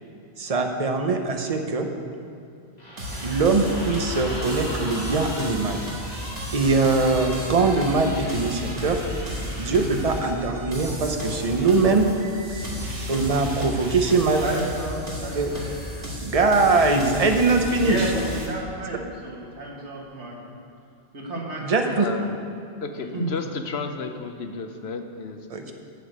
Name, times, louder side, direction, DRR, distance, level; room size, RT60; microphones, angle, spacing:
voice 1, 0.4-1.9 3.2-5.8 6.5-9.0 9.6-12.1 13.1-14.4 15.3-15.5 16.2-18.1 21.6-22.0 25.5-25.6, right 3 dB, 35° right, 4 dB, 0.8 m, -22 dB
sound 1, 2.8-9.8, equal, 35° left, 2.3 m, -38 dB
sound 2, 3.0-18.5, equal, 60° right, 1.9 m, -33 dB
voice 2, 14.4-15.6 17.7-20.5 21.1-22.3 23.1-23.3, right 1 dB, 90° right, -3 dB, 2.1 m, -32 dB
voice 3, 22.0-22.3 22.8-25.4 25.7-25.8, left 4 dB, 70° left, 6 dB, 1.0 m, -32 dB
7.8 x 7.0 x 8.0 m, 2.6 s
omnidirectional pair, 1.1 m